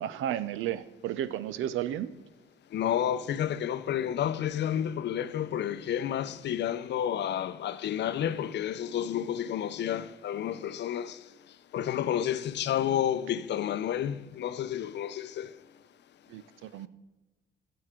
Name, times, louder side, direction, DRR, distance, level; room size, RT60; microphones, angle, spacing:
voice 1, 0.0-2.1 16.3-16.9, right 11 dB, 85° right, 0.5 m, -33 dB
voice 2, 2.7-11.2 11.7-15.5, left 10 dB, 60° left, 0.6 m, -30 dB
12.0 x 7.6 x 3.7 m
cardioid pair, 90°, 20 cm